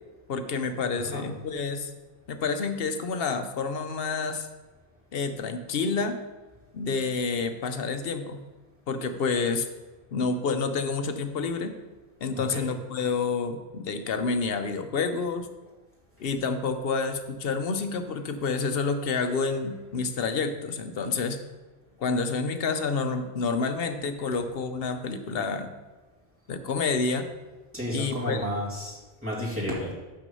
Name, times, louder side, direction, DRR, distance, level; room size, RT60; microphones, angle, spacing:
voice 1, 0.3-1.9 2.3-4.5 5.1-6.2 6.7-8.4 8.9-9.7 10.1-11.7 12.2-15.5 16.2-21.4 22.0-25.7 26.5-27.3 27.9-28.5, left 4 dB, 65° left, 8 dB, 0.9 m, -28 dB
voice 2, 0.9-1.3 12.3-12.7 24.3-24.4 27.7-29.9, equal, 10° right, -6 dB, 2.4 m, -32 dB
7.0 x 6.0 x 5.4 m, 1.2 s
omnidirectional pair, 1.1 m